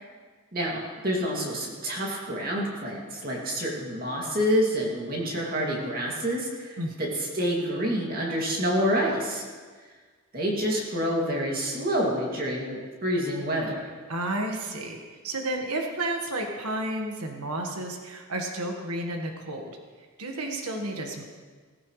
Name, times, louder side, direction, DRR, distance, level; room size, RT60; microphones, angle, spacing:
voice 1, 0.5-9.4 10.3-13.9, equal, 40° right, -2 dB, 2.5 m, -28 dB
voice 2, 6.8-7.1 14.1-19.8 20.2-21.2, right 1 dB, 90° right, 2 dB, 1.6 m, -32 dB
16.5 x 15.0 x 3.3 m, 1.5 s
head